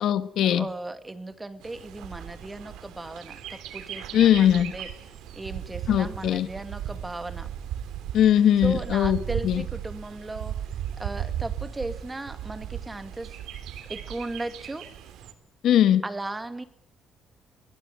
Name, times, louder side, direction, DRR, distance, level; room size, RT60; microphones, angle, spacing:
voice 1, 0.0-0.6 4.1-4.7 5.9-6.5 8.1-9.6 15.6-16.0, left 10 dB, 75° left, 12 dB, 1.6 m, -20 dB
voice 2, 0.5-4.9 5.3-7.5 8.6-10.5 11.0-13.4 13.9-14.9 16.0-16.6, right 2 dB, 15° right, 11 dB, 2.3 m, -36 dB
Bird, 1.6-15.3, right 10 dB, 90° right, 3.2 m, -36 dB
22.0 x 20.5 x 9.4 m, 0.64 s
cardioid pair, 105°, 0 cm